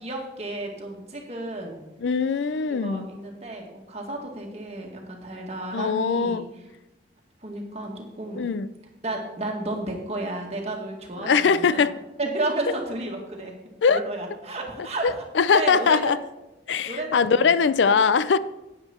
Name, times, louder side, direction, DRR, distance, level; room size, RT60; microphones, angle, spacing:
voice 1, 0.0-1.8 2.8-6.4 7.4-8.4 9.0-11.8 12.2-13.5 13.9-15.1 15.5-16.2 16.9-17.6, right 2 dB, 35° right, 0 dB, 1.9 m, -32 dB
voice 2, 2.0-3.1 5.7-6.5 8.4-8.7 11.2-11.9 13.8-14.0 15.0-16.2 16.7-18.4, left 5 dB, 85° left, 16 dB, 0.4 m, -21 dB
9.8 x 9.3 x 4.3 m, 1.0 s
head